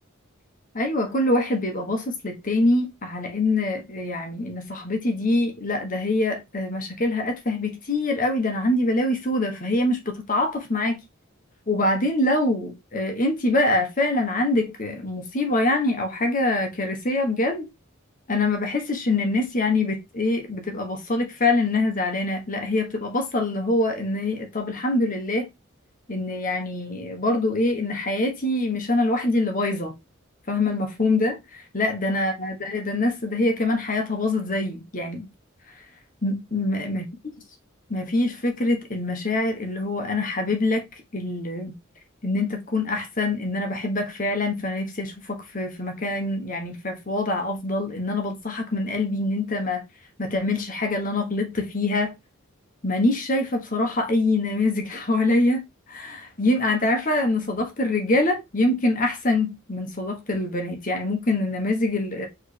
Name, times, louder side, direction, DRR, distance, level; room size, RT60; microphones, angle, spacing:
voice 1, 0.7-11.0 11.7-17.7 18.3-25.5 26.1-29.9 30.5-35.3 36.2-37.0 37.9-40.9 41.1-41.7 42.2-49.9 50.2-52.1 52.8-62.3, left 2 dB, 40° left, 1.3 m, -24 dB
4.5 x 3.4 x 3.4 m
head